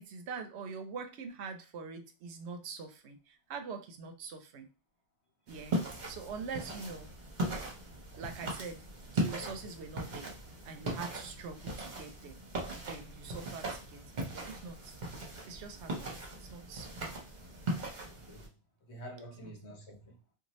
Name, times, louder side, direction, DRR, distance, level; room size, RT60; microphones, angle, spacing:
voice 1, 0.0-4.7 5.5-5.8 6.1-7.1 8.2-10.3 10.6-12.4 12.8-15.0 15.4-16.1 16.4-17.2 19.4-19.6 19.9-20.0, right 5 dB, 70° right, 0.8 m, -44 dB
sound 1, 5.5-18.5, right 1 dB, 45° right, 0.9 m, -39 dB
voice 2, 9.4-9.8 18.1-18.5 18.9-20.2, equal, 65° left, 1.2 m, -48 dB
2.6 x 2.4 x 3.0 m
omnidirectional pair, 1.2 m